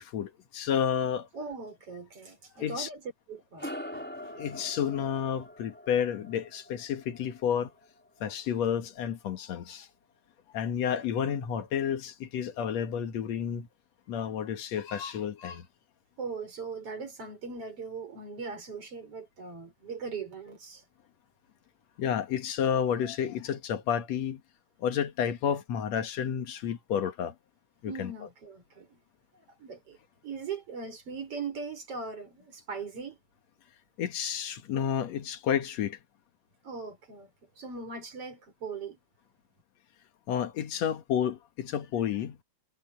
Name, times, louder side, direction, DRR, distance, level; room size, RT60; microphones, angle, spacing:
voice 1, 0.0-1.3 2.6-2.9 3.9-7.7 8.2-9.9 10.5-13.7 14.1-15.7 22.0-24.4 24.8-27.3 27.8-28.1 34.0-36.0 40.3-42.4, left 8 dB, 65° left, 2.5 m, -31 dB
voice 2, 1.3-3.0 3.3-3.7 16.2-20.8 27.8-29.0 29.6-30.0 30.2-33.2 36.6-37.3 37.6-39.0, right 4 dB, 50° right, 6.2 m, -39 dB
sound 1, 3.6-8.3, left 1 dB, 5° left, 5.1 m, -44 dB
omnidirectional pair, 3.5 m